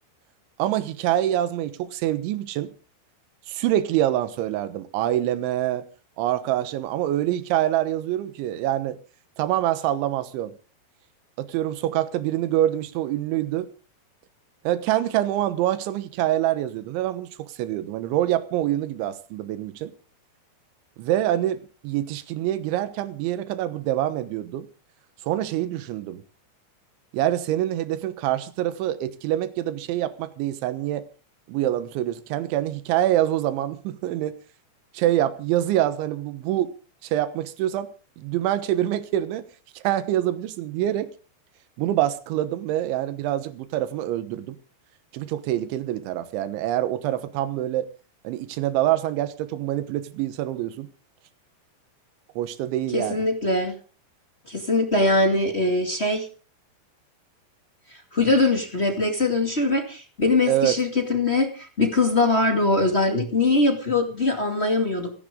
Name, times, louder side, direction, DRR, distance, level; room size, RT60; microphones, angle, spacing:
voice 1, 0.6-2.7 3.5-5.8 6.2-9.0 9.4-10.5 11.4-13.7 14.7-19.9 21.0-24.7 25.2-26.2 27.1-31.1 31.5-34.4 34.9-36.7 37.0-37.9 38.2-39.5 39.8-41.1 41.8-44.6 45.1-47.9 48.3-50.9 52.4-53.3 60.5-60.8, right 13 dB, 85° right, 12 dB, 3.6 m, -25 dB
voice 2, 52.9-53.8 54.5-56.2 58.1-65.1, left 2 dB, 30° left, 3 dB, 1.2 m, -22 dB
28.5 x 10.5 x 3.7 m, 0.36 s
omnidirectional pair, 5.2 m